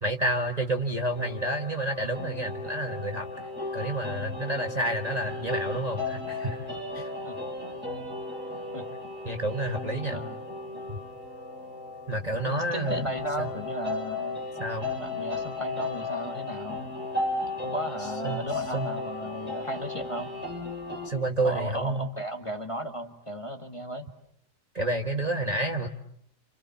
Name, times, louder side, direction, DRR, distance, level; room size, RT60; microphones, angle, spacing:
voice 1, 0.0-3.3 3.7-6.7 6.9-7.1 9.2-10.2 10.9-11.0 12.1-13.1 13.4-13.5 14.6-14.9 18.2-18.4 18.7-18.9 21.0-22.1 24.7-25.9, right 1 dB, 25° right, 3 dB, 1.5 m, -29 dB
sound 1, 1.1-21.1, left 2 dB, 5° right, 6.2 m, -35 dB
voice 2, 12.4-14.4 15.0-16.8 17.6-20.3 21.4-24.0, right 1 dB, 20° left, 5 dB, 1.7 m, -35 dB
29.0 x 28.5 x 7.2 m, 0.70 s
omnidirectional pair, 1.7 m